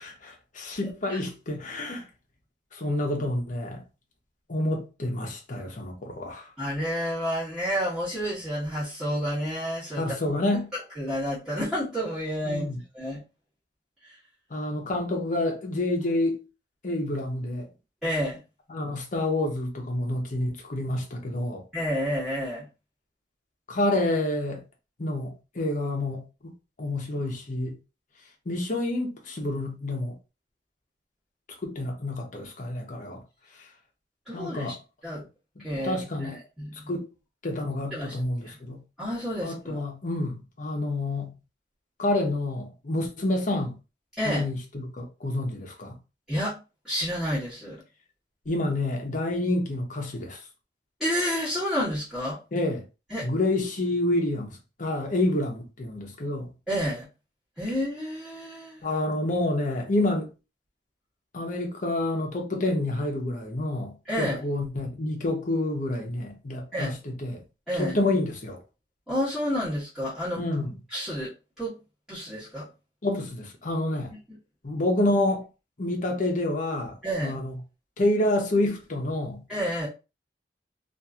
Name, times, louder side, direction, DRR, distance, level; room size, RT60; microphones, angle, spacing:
voice 1, 0.0-2.0 2.7-3.8 4.5-6.5 10.0-10.7 12.4-12.8 14.5-16.4 16.8-17.7 18.7-21.6 23.7-24.6 25.0-26.5 26.8-27.7 28.5-30.1 31.6-33.2 34.3-34.8 35.6-36.4 36.9-37.1 37.4-38.8 39.4-41.3 42.0-43.8 44.2-46.0 48.5-50.4 52.5-52.8 53.2-56.5 58.8-60.3 61.3-67.4 67.7-68.6 70.4-70.7 73.0-74.1 74.6-75.5 75.8-77.0 77.2-77.6 78.0-79.4, left 1 dB, 45° left, 0.8 m, -28 dB
voice 2, 0.8-1.2 6.6-10.2 10.5-12.6 12.9-13.2 14.0-14.1 18.0-18.4 21.7-22.6 34.3-34.7 35.0-35.2 35.6-36.9 37.9-38.6 39.0-39.9 44.2-44.5 46.3-46.6 46.8-47.8 51.0-52.4 53.1-53.3 56.7-57.1 57.6-58.8 64.1-64.4 66.7-67.0 67.7-68.0 69.1-70.4 70.9-71.3 71.6-71.7 72.1-72.7 74.3-74.4 77.0-77.4 79.5-79.9, equal, ahead, 1.3 m, -30 dB
2.8 x 2.6 x 2.4 m
head